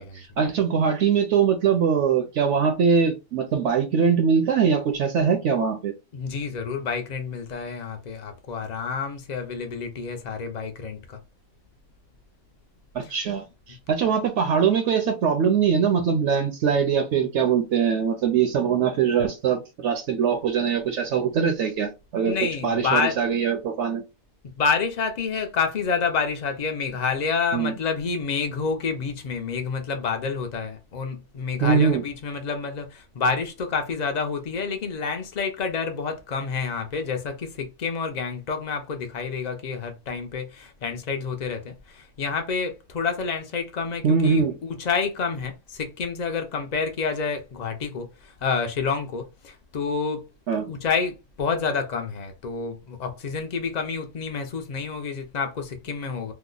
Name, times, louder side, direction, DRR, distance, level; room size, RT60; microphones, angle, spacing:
voice 1, 0.0-5.9 12.9-22.3 22.6-24.0 27.5-27.7 31.6-32.0 44.0-44.5 50.5-50.7, right 6 dB, 65° right, 0.8 m, -22 dB
voice 2, 6.1-11.2 13.0-13.1 22.2-23.2 24.6-50.2 50.7-56.3, left 5 dB, 65° left, 0.4 m, -28 dB
2.8 x 2.0 x 3.8 m
omnidirectional pair, 1.4 m